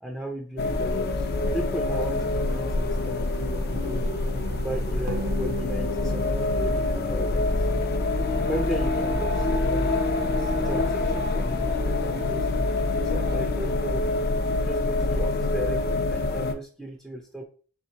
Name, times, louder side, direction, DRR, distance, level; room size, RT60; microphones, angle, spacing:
voice 1, 0.0-4.1 4.5-7.9 8.4-10.0 10.4-14.1 14.6-17.5, equal, ahead, 0 dB, 0.5 m, -36 dB
sound 1, 0.6-16.5, left 2 dB, 45° left, 0.5 m, -26 dB
sound 2, 1.3-13.5, right 1 dB, 45° right, 0.8 m, -42 dB
sound 3, 5.1-8.6, right 2 dB, 80° right, 0.8 m, -39 dB
4.5 x 3.6 x 2.8 m, 0.40 s
head